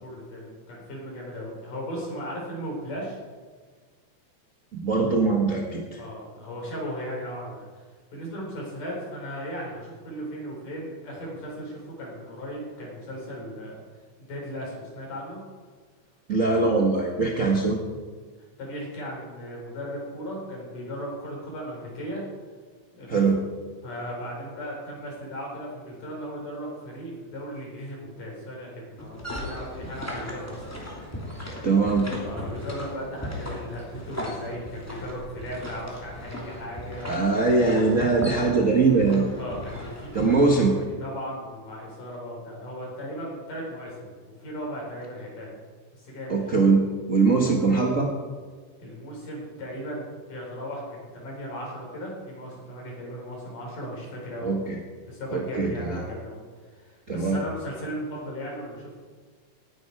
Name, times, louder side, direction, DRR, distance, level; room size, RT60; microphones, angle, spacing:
voice 1, 0.0-3.2 5.9-7.8 8.1-13.7 14.2-15.4 17.4-17.7 18.4-22.2 22.9-23.1 23.8-30.6 32.2-37.7 39.3-45.6 45.9-46.6 48.8-54.6 55.1-56.4 56.7-59.0, equal, 85° left, -2 dB, 6.1 m, -37 dB
voice 2, 4.7-6.0 16.3-17.8 23.1-23.4 31.6-32.1 37.1-39.3 40.1-40.7 46.3-48.1 54.4-54.8 55.3-56.0 57.1-57.4, right 4 dB, 50° right, -1 dB, 0.9 m, -22 dB
sound 1, 29.0-40.6, left 1 dB, 5° left, 2.4 m, -37 dB
18.5 x 10.5 x 4.8 m, 1.5 s
omnidirectional pair, 3.6 m